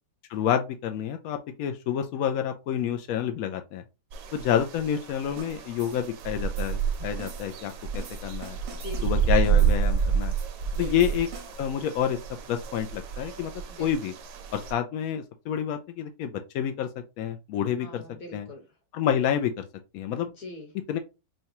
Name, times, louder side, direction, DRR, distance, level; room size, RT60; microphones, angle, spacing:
voice 1, 0.3-3.8 4.3-8.6 9.0-10.3 10.8-11.3 11.6-12.2 12.5-13.5 13.8-14.1 14.5-16.9 17.2-18.0 18.3-18.5 18.9-19.7 19.9-20.3 20.9-21.0, left 9 dB, 75° left, 0.8 m, -28 dB
sound 1, 4.1-14.7, right 6 dB, 70° right, 1.2 m, -29 dB
sound 2, 5.4-11.7, right 6 dB, 50° right, 0.8 m, -48 dB
voice 2, 8.7-9.3 10.7-10.9 13.7-13.9 17.8-18.7 20.3-20.7, left 2 dB, 50° left, 1.6 m, -42 dB
5.5 x 2.2 x 2.8 m
omnidirectional pair, 2.0 m